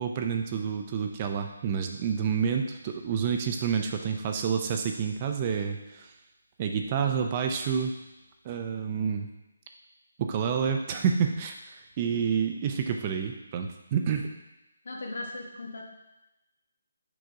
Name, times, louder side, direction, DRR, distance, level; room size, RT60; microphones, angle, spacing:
voice 1, 0.0-6.1 6.6-7.9 8.4-9.3 10.2-11.6 12.0-14.3, right 7 dB, 25° right, 4 dB, 0.4 m, -28 dB
voice 2, 14.8-15.8, left 2 dB, 65° left, 0 dB, 1.3 m, -39 dB
6.4 x 3.9 x 4.7 m, 0.96 s
hypercardioid pair, 170°, 0 cm